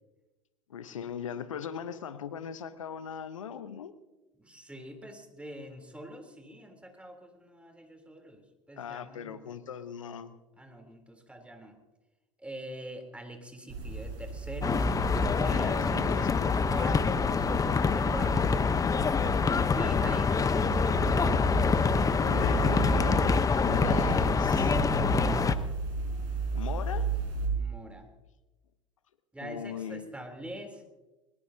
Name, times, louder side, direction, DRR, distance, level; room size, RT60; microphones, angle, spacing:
voice 1, 0.7-3.9 8.8-10.4 15.4-16.5 22.2-24.8 26.5-27.1 29.4-30.1, left 8 dB, 80° left, 13 dB, 1.0 m, -39 dB
voice 2, 4.4-9.6 10.6-11.8 12.4-14.9 15.3-16.3 16.6-17.5 17.9-18.9 19.7-21.5 24.9-25.6 27.5-28.1 29.3-30.8, right 1 dB, 5° right, 4 dB, 3.5 m, -44 dB
sound 1, 13.7-27.5, right 3 dB, 60° right, 6.3 m, -34 dB
sound 2, 14.6-25.6, left 5 dB, 20° left, 1.0 m, -26 dB
22.5 x 21.5 x 2.8 m, 1.1 s
hypercardioid pair, 75°, 16 cm